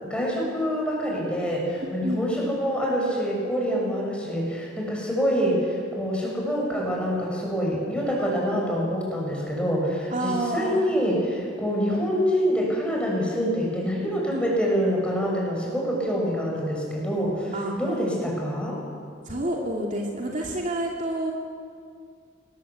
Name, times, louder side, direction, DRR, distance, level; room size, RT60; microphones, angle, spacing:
voice 1, 0.0-18.8, equal, 5° left, -3 dB, 6.9 m, -26 dB
voice 2, 2.0-2.5 10.1-10.8 14.3-14.4 17.5-17.7 19.3-21.3, right 1 dB, 40° right, -1 dB, 2.7 m, -29 dB
26.0 x 20.0 x 8.4 m, 2.2 s
head